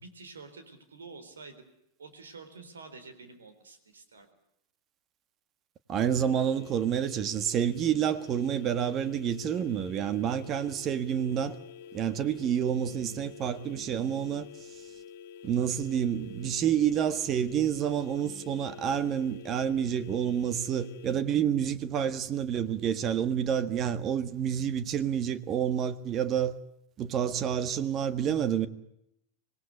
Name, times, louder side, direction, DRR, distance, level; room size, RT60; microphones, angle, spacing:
voice 1, 0.0-1.6 2.0-4.3, right 4 dB, 80° right, 4.1 m, -48 dB
voice 2, 5.9-11.6 11.9-14.5 15.4-26.5 27.0-28.7, right 9 dB, 35° right, 1.6 m, -28 dB
sound 1, 6.0-21.2, left 8 dB, 60° left, 2.0 m, -48 dB
25.5 x 19.0 x 8.3 m
figure-of-eight pair, 90°, 0 cm